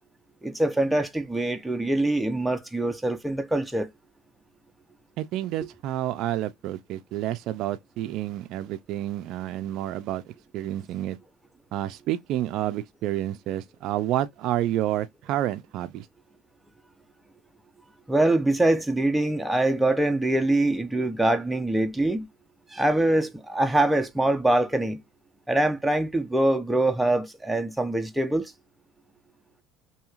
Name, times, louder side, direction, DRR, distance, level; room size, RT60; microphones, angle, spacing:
voice 1, 0.4-3.9 18.1-22.3 22.7-25.0 25.5-28.5, right 1 dB, 5° right, 0.5 m, -24 dB
voice 2, 5.2-11.2 11.7-16.1, right 13 dB, 60° right, 0.3 m, -29 dB
2.9 x 2.7 x 2.3 m
supercardioid pair, 110°, 0 cm